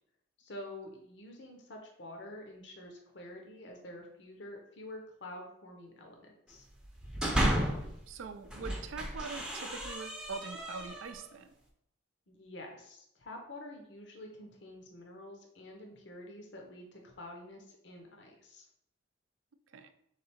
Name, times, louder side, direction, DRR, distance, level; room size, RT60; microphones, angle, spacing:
voice 1, 0.4-6.7 12.3-18.7, left 1 dB, 60° left, 1 dB, 0.7 m, -48 dB
sound 1, 6.8-7.9 8.4-11.3, right 1 dB, 5° right, 0.5 m, -33 dB
voice 2, 8.1-11.5 19.7-19.9, right 5 dB, 85° right, 9 dB, 0.4 m, -43 dB
3.7 x 3.3 x 4.3 m, 0.74 s
head